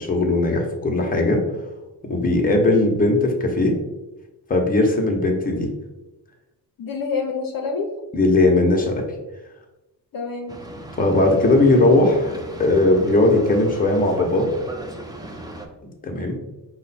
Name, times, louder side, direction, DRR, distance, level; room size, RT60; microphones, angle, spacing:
voice 1, 0.0-1.4 2.0-3.8 4.5-5.7 8.1-9.0 11.0-14.5 15.8-16.4, left 2 dB, 20° left, 1 dB, 0.9 m, -18 dB
voice 2, 6.8-7.9 10.1-10.6, left 4 dB, 55° left, 1 dB, 0.7 m, -27 dB
Boat Water vehicle, 10.5-15.7, right 1 dB, 10° right, 0.5 m, -37 dB
4.9 x 2.2 x 4.1 m, 1.0 s
cardioid pair, 95°, 42 cm